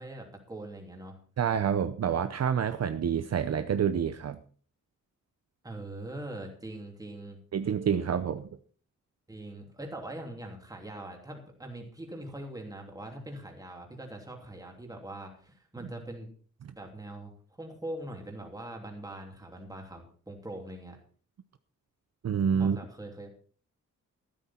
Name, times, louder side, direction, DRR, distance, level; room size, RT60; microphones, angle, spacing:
voice 1, 0.0-1.2 5.6-7.4 9.3-16.3 16.7-17.3 17.6-21.0 22.6-23.3, right 1 dB, 10° right, 1 dB, 3.0 m, -42 dB
voice 2, 1.4-4.4 7.5-8.5 22.2-22.8, right 7 dB, 55° right, 10 dB, 0.7 m, -28 dB
14.0 x 12.5 x 4.4 m, 0.43 s
wide cardioid pair, 180°, 31 cm